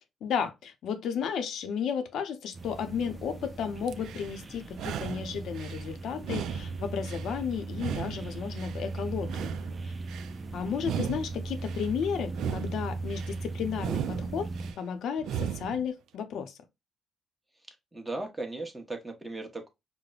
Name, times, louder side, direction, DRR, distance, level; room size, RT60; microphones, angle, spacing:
voice 1, 0.2-9.5 10.5-14.5 14.8-16.5, left 7 dB, 75° left, 0.6 m, -33 dB
sound 1, 2.5-14.7, right 3 dB, 35° right, 0.6 m, -38 dB
sound 2, 3.9-4.3 4.7-5.8 6.2-7.3 7.7-8.8 9.2-10.3 10.8-11.9 12.3-13.3 13.7-14.8 15.2-15.8, right 9 dB, 80° right, 0.3 m, -36 dB
voice 2, 17.7-19.7, right 2 dB, 10° right, 1.0 m, -37 dB
4.9 x 2.1 x 2.4 m
cardioid pair, 90°, 0 cm